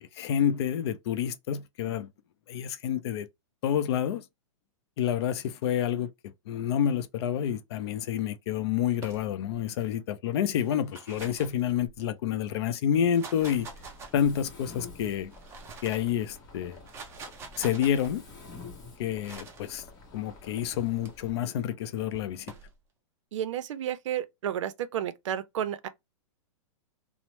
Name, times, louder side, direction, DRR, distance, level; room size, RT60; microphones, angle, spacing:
voice 1, 0.0-2.1 2.5-3.3 3.6-4.2 5.0-6.1 6.5-13.7 14.1-15.3 15.8-16.8 17.6-18.2 19.0-19.8 20.1-22.5, left 9 dB, 55° left, 0.4 m, -28 dB
sound 1, 9.0-9.6 10.7-12.2 12.9-14.6 15.2-16.1 16.7-18.1 19.2-19.7 20.7-21.1 22.1-22.7, right 4 dB, 15° right, 0.4 m, -46 dB
Mechanisms, 13.7-21.3, left 3 dB, 20° left, 0.9 m, -49 dB
voice 2, 23.3-25.9, right 10 dB, 70° right, 0.5 m, -32 dB
2.9 x 2.0 x 3.0 m
hypercardioid pair, 145°, 16 cm